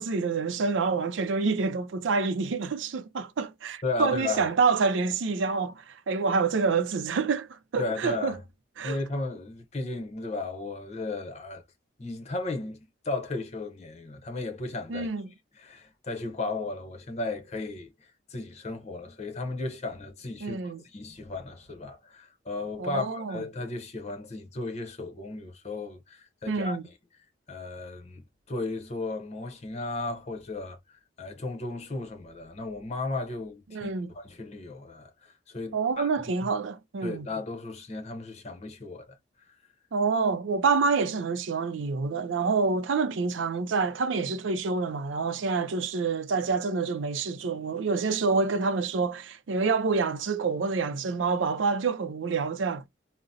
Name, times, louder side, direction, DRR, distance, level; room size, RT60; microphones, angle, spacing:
voice 1, 0.0-8.4 8.8-9.0 14.9-15.3 20.4-20.8 22.8-23.4 26.5-26.8 33.7-34.1 35.7-37.3 39.9-52.9, right 4 dB, 80° right, 0.4 m, -27 dB
voice 2, 3.8-4.4 7.8-8.4 8.8-11.6 12.0-15.1 15.6-26.8 27.5-36.1 36.4-36.5 37.0-39.2, left 3 dB, 35° left, 0.8 m, -35 dB
3.7 x 2.0 x 2.7 m
head